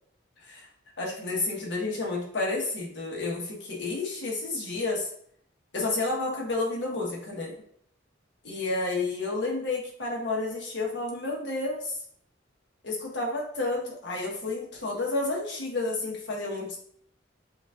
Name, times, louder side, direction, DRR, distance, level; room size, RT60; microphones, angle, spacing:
voice 1, 1.0-5.1 5.7-7.6 8.4-12.0 12.8-16.8, left 2 dB, 65° left, -2 dB, 1.2 m, -30 dB
6.9 x 2.5 x 2.4 m, 0.63 s
head